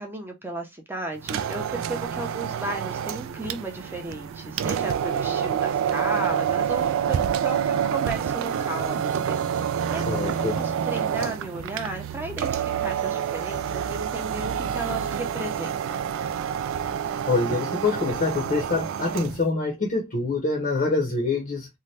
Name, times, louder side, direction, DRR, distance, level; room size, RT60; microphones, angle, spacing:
voice 1, 0.0-9.4 9.9-16.0, right 2 dB, 10° right, 0.6 m, -34 dB
sound 1, 1.2-19.4, right 8 dB, 65° right, 0.3 m, -28 dB
voice 2, 10.1-10.6 17.3-21.7, left 3 dB, 40° left, 0.7 m, -25 dB
2.7 x 2.1 x 3.2 m
head